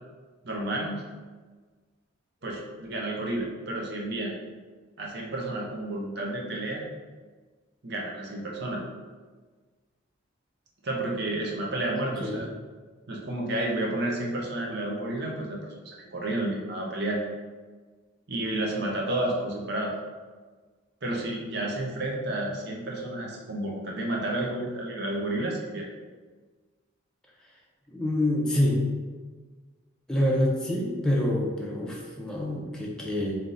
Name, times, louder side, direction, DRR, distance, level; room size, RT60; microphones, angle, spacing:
voice 1, 0.4-1.0 2.4-4.3 5.0-6.8 7.8-8.8 10.8-12.5 13.1-17.2 18.3-19.9 21.0-25.9, right 1 dB, 55° right, -1 dB, 0.8 m, -31 dB
voice 2, 12.0-12.4 27.9-28.8 30.1-33.3, left 1 dB, 5° left, -4 dB, 0.5 m, -26 dB
3.5 x 2.7 x 3.8 m, 1.4 s
head